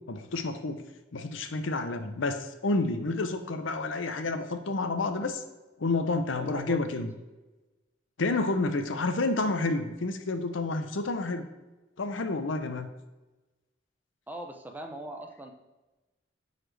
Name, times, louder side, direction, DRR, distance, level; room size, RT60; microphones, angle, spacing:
voice 1, 0.1-0.8 1.1-5.4 5.8-7.1 8.2-11.5 12.0-12.9, left 3 dB, 75° left, 8 dB, 0.7 m, -29 dB
voice 2, 6.4-7.0 14.3-15.5, right 1 dB, 10° right, 3 dB, 0.6 m, -40 dB
9.2 x 4.1 x 3.3 m, 1.1 s
head